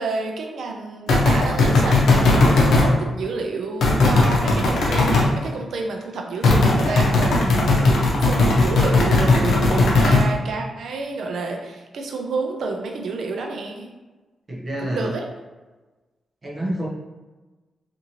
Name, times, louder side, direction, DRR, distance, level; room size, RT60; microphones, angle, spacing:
voice 1, 0.0-13.9 14.8-15.3, right 3 dB, 80° right, 2 dB, 0.5 m, -29 dB
sound 1, 1.1-2.9 3.8-5.3 6.4-10.3, left 2 dB, 80° left, 0.6 m, -17 dB
voice 2, 14.5-15.1 16.4-16.9, right 1 dB, 35° right, -4 dB, 0.7 m, -28 dB
2.6 x 2.6 x 2.8 m, 1.2 s
cardioid pair, 100°, 0 cm